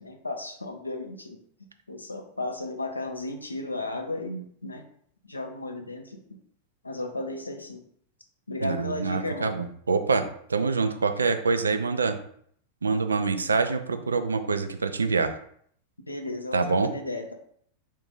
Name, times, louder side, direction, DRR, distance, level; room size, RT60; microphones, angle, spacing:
voice 1, 0.0-4.9 5.3-6.4 6.8-7.9 8.5-9.5 16.1-17.3, left 2 dB, 80° left, 4 dB, 0.5 m, -34 dB
voice 2, 8.6-12.2 12.8-15.3 16.5-16.9, right 4 dB, 75° right, 9 dB, 0.4 m, -25 dB
3.6 x 2.5 x 3.9 m, 0.63 s
figure-of-eight pair, 90°, 0 cm